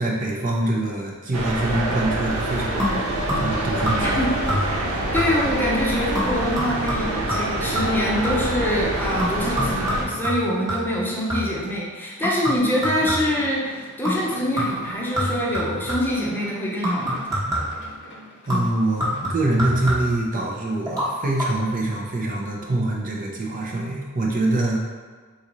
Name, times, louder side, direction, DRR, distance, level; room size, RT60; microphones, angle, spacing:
voice 1, 0.0-2.9 3.4-4.3 18.5-24.8, right 2 dB, 40° right, -2 dB, 0.6 m, -24 dB
sound 1, 1.3-10.1, right 1 dB, 80° right, 0.7 m, -26 dB
sound 2, 2.8-3.6 3.9-4.2 4.5-4.9 5.2-5.6 6.1-8.6 9.2-11.7 12.2-13.5 14.0-14.3 14.6-16.2 16.8-17.9 18.5-20.3 20.8-21.1 21.4-21.5, equal, 15° right, 1.1 m, -27 dB
voice 2, 4.0-4.3 5.1-17.2, left 1 dB, 10° left, -5 dB, 0.7 m, -25 dB
sound 3, 12.5-19.9, equal, 55° left, 0.7 m, -44 dB
3.9 x 3.9 x 3.0 m, 1.5 s
head